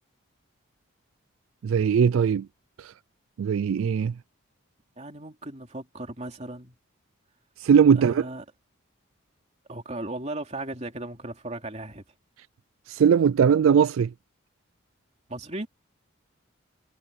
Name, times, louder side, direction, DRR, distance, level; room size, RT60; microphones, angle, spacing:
voice 1, 1.6-2.5 2.8-2.9 3.4-4.1 7.6-8.3 12.9-14.1, right 7 dB, 75° right, 0.3 m, -20 dB
voice 2, 5.0-6.7 7.9-8.4 9.7-12.0 15.3-15.7, right 2 dB, 30° right, 3.1 m, -36 dB
head